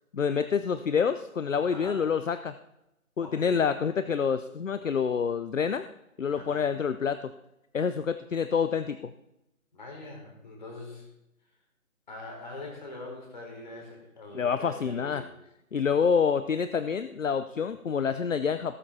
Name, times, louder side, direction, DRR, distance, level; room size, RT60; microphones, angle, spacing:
voice 1, 0.1-2.5 3.2-5.8 6.2-7.3 7.7-9.1 14.3-15.2 15.7-18.8, left 6 dB, 60° left, 12 dB, 0.7 m, -27 dB
voice 2, 1.7-2.0 3.2-3.7 6.3-6.6 9.7-11.1 12.1-15.3, left 2 dB, 30° left, 0 dB, 3.8 m, -43 dB
18.0 x 6.9 x 4.2 m, 0.89 s
figure-of-eight pair, 175°, 43 cm